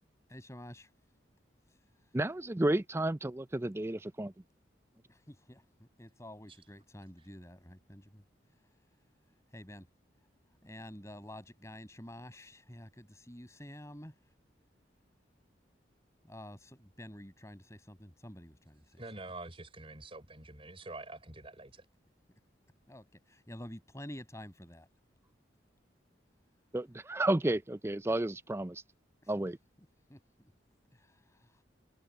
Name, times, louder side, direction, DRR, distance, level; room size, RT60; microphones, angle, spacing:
voice 1, 0.3-0.9 5.1-8.2 9.5-9.9 10.6-14.1 16.2-19.0 22.9-24.9 29.2-29.3 30.1-30.2 31.0-31.5, left 1 dB, 15° left, 6.7 m, -49 dB
voice 2, 2.1-4.3 26.7-28.8 29.3-29.6, right 1 dB, 15° right, 0.5 m, -32 dB
voice 3, 19.0-21.9, right 2 dB, 30° right, 5.1 m, -46 dB
head